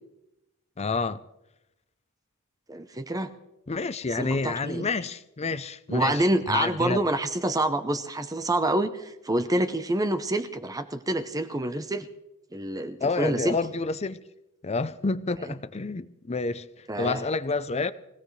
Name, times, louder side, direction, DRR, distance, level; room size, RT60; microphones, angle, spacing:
voice 1, 0.8-1.2 3.7-6.2 6.5-7.0 13.0-14.2 14.6-16.6 17.0-17.9, left 3 dB, 30° left, 0.6 m, -29 dB
voice 2, 2.7-3.3 4.1-4.9 5.9-12.1 12.5-13.6 15.5-15.6 16.9-17.2, right 1 dB, 15° right, 0.7 m, -27 dB
23.5 x 16.5 x 3.2 m
head